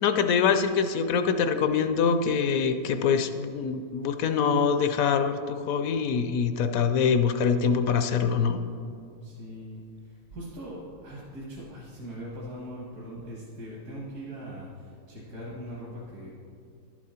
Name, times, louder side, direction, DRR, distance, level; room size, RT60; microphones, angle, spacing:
voice 1, 0.0-8.6, left 6 dB, 70° left, 8 dB, 0.9 m, -24 dB
voice 2, 9.4-9.8 10.4-14.7 15.1-16.3, equal, 65° right, -5 dB, 1.9 m, -40 dB
11.5 x 7.4 x 4.3 m, 2.5 s
omnidirectional pair, 1.8 m